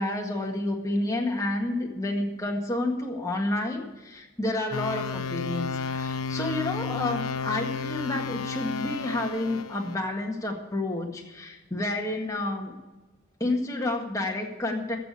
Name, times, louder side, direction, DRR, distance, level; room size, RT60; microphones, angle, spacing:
voice 1, 0.0-12.7 13.4-15.0, left 2 dB, 15° left, 0 dB, 1.8 m, -30 dB
sound 1, 4.7-9.9, left 5 dB, 80° left, 1.0 m, -32 dB
14.5 x 6.9 x 8.3 m, 1.1 s
head